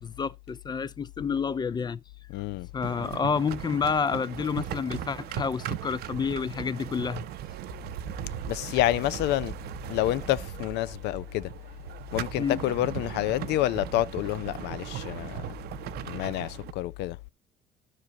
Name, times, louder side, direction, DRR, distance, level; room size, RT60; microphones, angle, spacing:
voice 1, 0.0-2.0 2.7-7.2 12.4-12.6, left 6 dB, 25° left, 0.4 m, -29 dB
voice 2, 2.3-2.7 8.5-9.6 9.9-11.5 12.1-15.5 16.0-17.2, left 15 dB, 85° left, 0.5 m, -28 dB
sound 1, 2.8-16.7, right 11 dB, 70° right, 0.7 m, -38 dB
12.5 x 4.9 x 3.8 m
cardioid pair, 110°, 17 cm